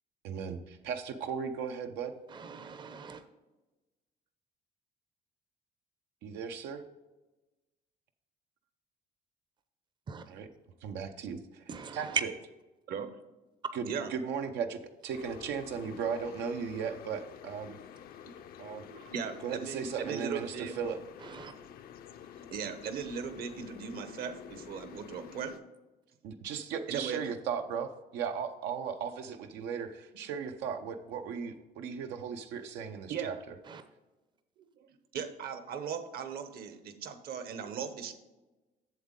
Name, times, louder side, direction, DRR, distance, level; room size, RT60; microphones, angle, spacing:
voice 1, 0.2-2.1 6.2-6.8 10.3-10.5 10.8-11.4 11.9-12.3 13.7-17.7 18.6-18.8 19.4-21.0 26.2-33.4, right 6 dB, 90° right, 6 dB, 0.7 m, -36 dB
voice 2, 2.3-3.2 10.1-10.2 11.7-12.2 21.2-21.6 33.7-33.8, right 6 dB, 25° right, 10 dB, 0.6 m, -38 dB
sound 1, 15.1-25.6, left 9 dB, 60° left, 0.5 m, -49 dB
voice 3, 18.9-20.7 22.4-25.6 26.9-27.2 33.1-33.3 35.1-38.1, right 7 dB, 65° right, 9 dB, 1.0 m, -38 dB
7.7 x 7.1 x 3.7 m, 1.1 s
cardioid pair, 110°, 17 cm